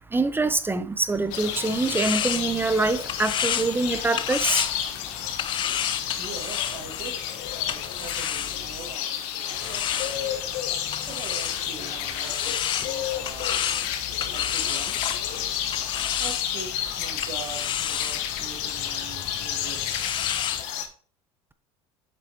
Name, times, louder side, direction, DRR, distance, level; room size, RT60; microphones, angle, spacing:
voice 1, 0.1-4.7, right 3 dB, 15° right, 0.6 m, -25 dB
sound 1, 1.1-9.0 9.5-20.6, left 10 dB, 30° left, 0.4 m, -32 dB
sound 2, 1.3-20.9, left 10 dB, 70° left, 1.1 m, -31 dB
voice 2, 6.2-7.3 7.6-10.4 11.1-13.9 14.3-15.0 16.2-20.0, right 5 dB, 55° right, 2.3 m, -42 dB
7.5 x 6.1 x 2.8 m
hypercardioid pair, 85°, 15 cm